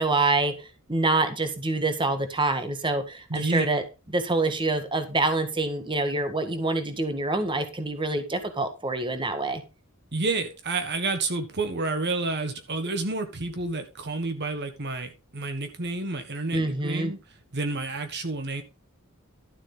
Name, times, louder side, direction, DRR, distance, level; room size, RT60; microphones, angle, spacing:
voice 1, 0.0-3.8 4.1-9.6 16.5-17.1, right 2 dB, 20° right, 1.7 m, -26 dB
voice 2, 3.3-3.7 10.1-17.2 17.5-18.6, right 3 dB, 50° right, 1.5 m, -29 dB
12.5 x 7.5 x 3.9 m
head